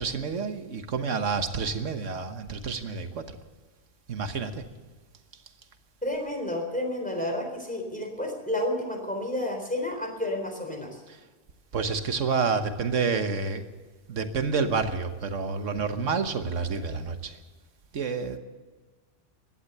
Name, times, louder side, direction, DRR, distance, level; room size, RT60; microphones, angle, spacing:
voice 1, 0.0-3.2 4.1-4.6 11.7-13.6 14.1-17.3 17.9-18.4, right 5 dB, 90° right, 8 dB, 1.6 m, -29 dB
voice 2, 6.0-11.0, left 1 dB, 5° left, 2 dB, 3.8 m, -31 dB
16.5 x 12.0 x 6.8 m, 1.3 s
omnidirectional pair, 1.2 m